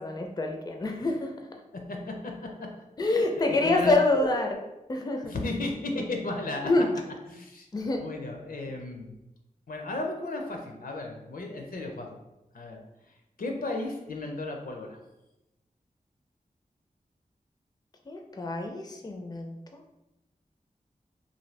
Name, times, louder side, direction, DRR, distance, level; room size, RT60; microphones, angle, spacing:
voice 1, 0.0-1.3 3.0-4.6 4.9-5.3 6.6-6.9 7.7-8.1 18.1-19.8, left 2 dB, 25° left, 3 dB, 0.4 m, -26 dB
voice 2, 3.5-4.0 5.2-6.7 7.3-7.7 8.0-9.2 9.7-12.2 12.5-12.8 13.4-15.0, left 2 dB, 75° left, 2 dB, 0.5 m, -34 dB
2.6 x 2.5 x 3.2 m, 0.94 s
wide cardioid pair, 70°, 15 cm